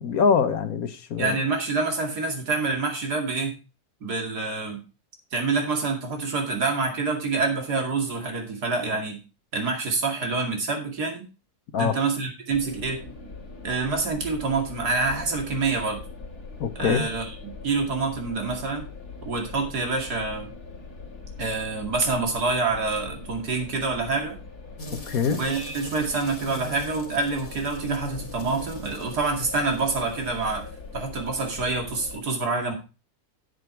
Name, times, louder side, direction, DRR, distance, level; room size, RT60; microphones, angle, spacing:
voice 1, 0.0-1.4 11.7-12.0 16.6-17.1 25.1-25.4, left 6 dB, 65° left, 1.4 m, -24 dB
voice 2, 1.2-3.6 4.0-4.8 5.3-9.2 9.5-11.2 11.8-13.0 13.6-16.0 16.8-17.3 17.6-18.9 19.2-20.5 21.4-24.4 25.4-30.6 30.9-32.7, right 3 dB, 85° right, 2.9 m, -27 dB
sound 1, 12.5-32.2, left 4 dB, 80° left, 3.4 m, -41 dB
sound 2, 24.8-30.8, left 1 dB, 50° left, 2.3 m, -42 dB
9.4 x 8.1 x 4.5 m
omnidirectional pair, 1.6 m